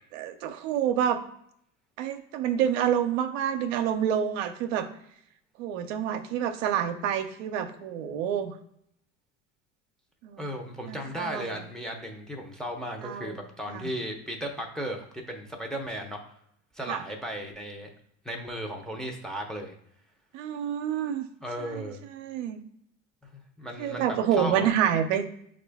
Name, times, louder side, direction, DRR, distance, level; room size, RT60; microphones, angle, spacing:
voice 1, 0.1-1.2 2.0-4.9 5.6-8.5 10.2-10.5 10.9-11.5 13.0-13.4 13.7-13.9 16.9-17.0 20.3-21.3 21.6-22.6 23.8-25.2, right 9 dB, 85° right, 7 dB, 0.6 m, -28 dB
voice 2, 10.4-16.2 16.7-17.9 18.2-19.7 21.4-22.0 23.2-24.7, equal, ahead, 2 dB, 0.7 m, -35 dB
5.8 x 2.5 x 3.4 m, 0.69 s
supercardioid pair, 95°, 37 cm